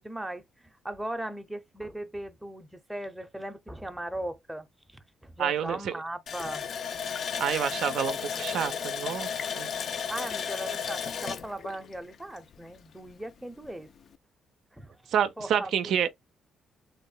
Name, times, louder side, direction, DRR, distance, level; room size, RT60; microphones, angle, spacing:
voice 1, 0.0-6.7 10.1-13.9 14.7-15.0 15.4-16.1, right 1 dB, 5° right, 0.6 m, -38 dB
voice 2, 5.4-5.9 7.4-9.3 9.6-9.7 15.1-16.1, right 9 dB, 75° right, 0.4 m, -28 dB
Water tap faucet, 6.3-12.8 13.1-13.2 13.6-13.8, left 7 dB, 60° left, 0.4 m, -34 dB
3.5 x 2.1 x 3.7 m
cardioid pair, 90°, 0 cm